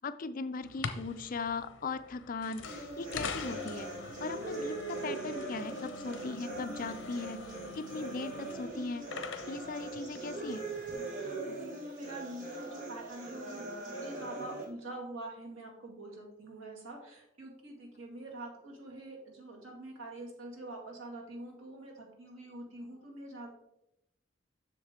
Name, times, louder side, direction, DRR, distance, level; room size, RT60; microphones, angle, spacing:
voice 1, 0.0-9.1 9.5-10.7, left 4 dB, 45° left, 12 dB, 0.4 m, -39 dB
sound 1, 0.6-10.9, left 4 dB, 65° left, 0.7 m, -44 dB
sound 2, 2.6-14.6, right 2 dB, 40° right, 2.0 m, -41 dB
voice 2, 11.1-23.5, right 2 dB, 85° right, 0 dB, 2.2 m, -45 dB
7.5 x 6.4 x 3.7 m, 0.82 s
head